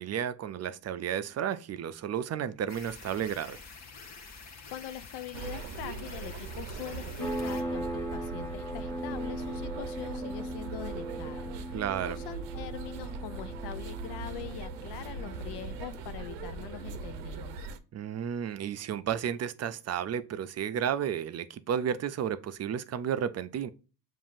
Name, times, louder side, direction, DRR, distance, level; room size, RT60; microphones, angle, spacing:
voice 1, 0.0-3.6 11.7-12.2 17.9-23.7, right 9 dB, 40° right, 0.5 m, -32 dB
sound 1, 2.7-7.6, left 4 dB, 40° left, 0.9 m, -48 dB
voice 2, 4.7-17.7, left 11 dB, 75° left, 0.6 m, -43 dB
sound 2, 5.3-17.8, right 4 dB, 85° right, 0.7 m, -40 dB
sound 3, 7.2-17.5, right 1 dB, 10° left, 0.7 m, -39 dB
7.1 x 2.7 x 2.5 m
cardioid pair, 90°, 42 cm